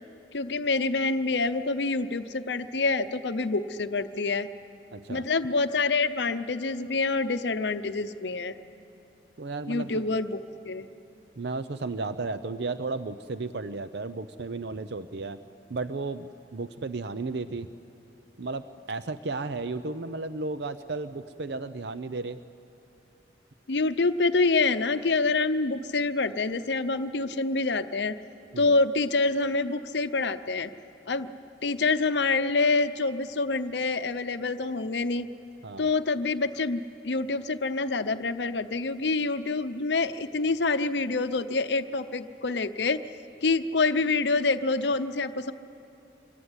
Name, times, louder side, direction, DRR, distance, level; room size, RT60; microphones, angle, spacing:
voice 1, 0.3-4.5 5.1-8.6 9.7-10.9 23.7-28.1 28.6-30.7 31.1-31.3 31.6-35.3 35.8-43.0 43.4-45.5, left 3 dB, 70° left, 10 dB, 0.8 m, -26 dB
voice 2, 4.9-5.2 9.4-10.0 11.4-15.4 15.7-17.7 18.4-22.4 28.5-28.8 35.6-35.9, right 3 dB, 65° right, 12 dB, 0.6 m, -34 dB
25.0 x 22.5 x 9.8 m, 2.7 s
head